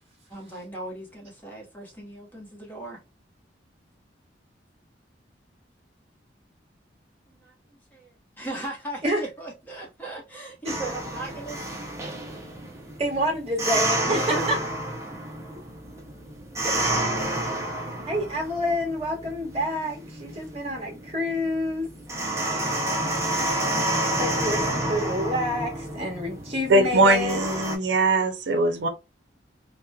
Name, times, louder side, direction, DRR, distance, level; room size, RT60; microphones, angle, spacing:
voice 1, 0.3-3.0 7.3-7.5 7.9-11.6 14.1-14.5, right 2 dB, 10° left, 0.9 m, -37 dB
sound 1, 10.7-27.8, right 1 dB, 15° right, 0.5 m, -30 dB
voice 2, 13.0-14.6 18.0-21.9 22.4-22.6 24.0-27.4, left 1 dB, 35° right, 1.1 m, -28 dB
voice 3, 26.7-28.9, right 2 dB, 80° right, 0.5 m, -21 dB
2.9 x 2.1 x 2.2 m
head